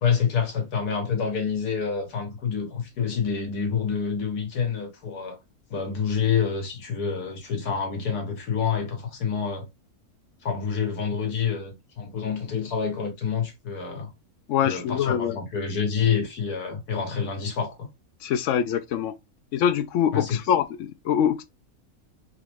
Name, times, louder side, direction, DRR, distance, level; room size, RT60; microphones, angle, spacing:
voice 1, 0.0-5.4 5.7-9.7 10.4-14.1 14.6-17.9 20.1-20.4, left 6 dB, 90° left, 1.8 m, -27 dB
voice 2, 14.5-15.4 18.2-19.1 19.5-21.4, left 9 dB, 70° left, 0.8 m, -24 dB
3.8 x 3.0 x 3.3 m
omnidirectional pair, 1.6 m